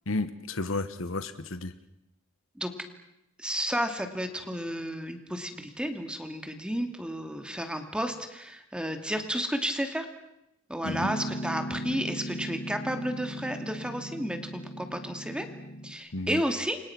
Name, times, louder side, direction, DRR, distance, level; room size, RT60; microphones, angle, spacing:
voice 1, 0.1-1.7 10.8-11.1 16.1-16.4, left 2 dB, 80° left, 12 dB, 1.4 m, -32 dB
voice 2, 3.4-10.1 10.7-15.5 15.8-16.8, equal, 5° right, 6 dB, 2.6 m, -32 dB
Piano, 10.8-15.9, equal, 65° left, 4.3 m, -37 dB
30.0 x 24.5 x 6.1 m, 0.85 s
head